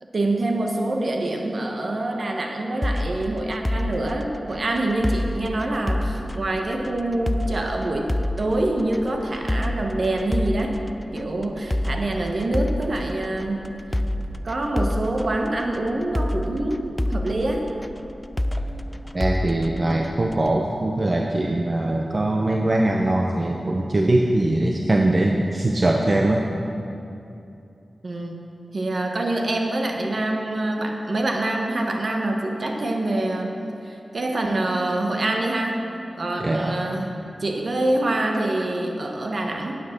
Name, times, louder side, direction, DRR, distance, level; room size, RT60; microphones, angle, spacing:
voice 1, 0.1-10.8 11.1-13.7 14.4-17.7 28.0-28.5 28.7-33.6 33.8-35.8 36.2-39.8, right 1 dB, 60° right, 2 dB, 1.2 m, -25 dB
sound 1, 2.8-20.6, left 1 dB, 15° left, 0.4 m, -29 dB
voice 2, 19.1-26.4 36.4-36.8, right 1 dB, 45° right, 1 dB, 0.7 m, -21 dB
9.4 x 7.3 x 5.9 m, 2.7 s
cardioid pair, 45°, 0 cm